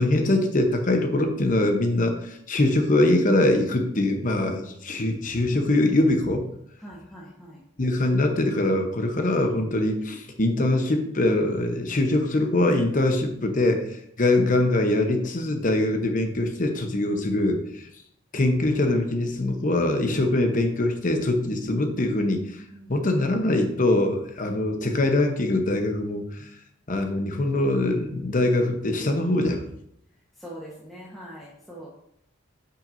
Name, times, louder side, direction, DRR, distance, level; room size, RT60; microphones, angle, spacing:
voice 1, 0.0-6.5 7.8-17.9 18.3-22.6 22.9-26.5 26.9-29.6, left 2 dB, 40° left, 5 dB, 0.9 m, -23 dB
voice 2, 6.8-7.6 16.9-17.5 20.2-20.4 22.4-23.1 30.4-31.9, equal, ahead, -7 dB, 1.1 m, -43 dB
8.7 x 5.7 x 2.6 m, 0.74 s
head